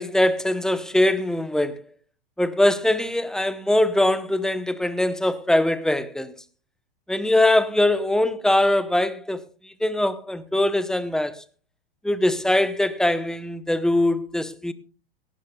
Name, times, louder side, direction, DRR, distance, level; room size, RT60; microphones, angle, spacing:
voice 1, 0.0-1.8 2.4-6.3 7.1-9.4 9.8-11.3 12.0-14.7, left 1 dB, ahead, 0.8 m, -22 dB
18.5 x 15.0 x 2.3 m
hypercardioid pair, 125°, 29 cm